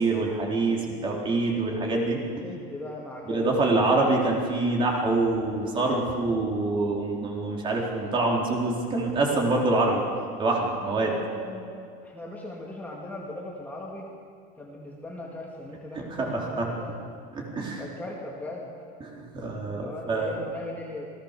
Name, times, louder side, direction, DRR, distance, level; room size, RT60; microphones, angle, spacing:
voice 1, 0.0-2.2 3.3-10.0 10.4-11.1 15.9-16.7 17.3-17.8 19.0-20.4, right 2 dB, 25° right, -1 dB, 4.0 m, -25 dB
voice 2, 2.4-3.5 11.0-14.1 14.6-17.1 17.8-18.7 19.7-21.1, left 1 dB, 10° left, -3 dB, 2.2 m, -39 dB
27.0 x 19.0 x 6.8 m, 2.2 s
cardioid pair, 155°, 20 cm